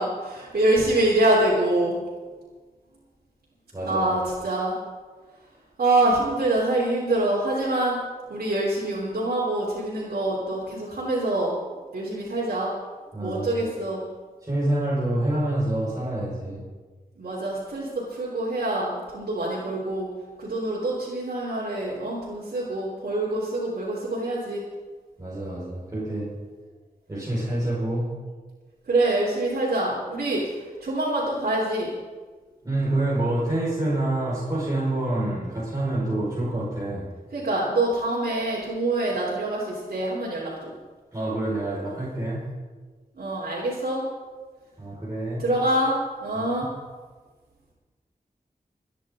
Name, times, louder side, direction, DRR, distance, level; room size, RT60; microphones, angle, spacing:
voice 1, 0.0-2.0 3.9-4.8 5.8-8.0 8.3-11.5 11.9-12.7 13.2-14.0 17.2-20.1 20.4-24.6 28.9-31.9 37.3-40.7 43.1-44.0 45.4-46.7, right 1 dB, 85° right, -7 dB, 3.5 m, -25 dB
voice 2, 3.7-4.1 13.1-13.7 14.4-16.6 25.2-26.3 27.1-28.1 32.6-37.1 41.1-42.5 44.8-45.5 46.4-46.5, right 1 dB, 25° right, -8 dB, 5.3 m, -27 dB
26.5 x 10.5 x 3.8 m, 1.4 s
wide cardioid pair, 85°, 16 cm